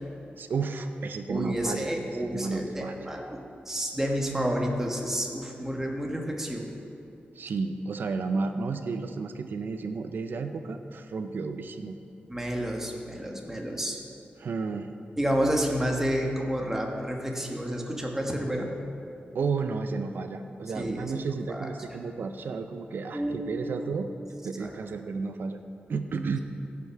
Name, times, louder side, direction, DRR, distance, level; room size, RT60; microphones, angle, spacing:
voice 1, 0.4-1.9 2.2-3.2 7.3-12.0 14.4-14.9 19.3-24.1 24.4-25.6 25.9-26.4, right 4 dB, 65° right, 7 dB, 0.5 m, -32 dB
voice 2, 1.3-3.4 3.6-6.7 12.3-14.0 15.2-18.7 20.7-21.1 21.5-21.7 23.1-23.7 24.6-24.7, equal, 10° right, 0 dB, 1.4 m, -30 dB
16.0 x 5.8 x 4.7 m, 2.5 s
wide cardioid pair, 105°, 4 cm